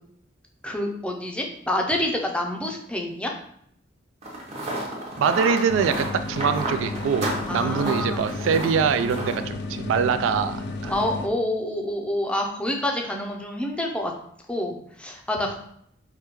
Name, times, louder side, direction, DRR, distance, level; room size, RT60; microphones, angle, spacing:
voice 1, 0.6-3.3 7.5-8.3 10.8-14.1 14.5-15.6, left 1 dB, 5° left, 1 dB, 0.5 m, -27 dB
sound 1, 4.2-9.4, right 1 dB, 35° right, 0.8 m, -31 dB
voice 2, 5.2-10.9, right 6 dB, 90° right, 12 dB, 0.3 m, -24 dB
sound 2, 5.7-11.3, left 2 dB, 60° left, 0.5 m, -33 dB
4.8 x 2.2 x 3.0 m, 0.69 s
head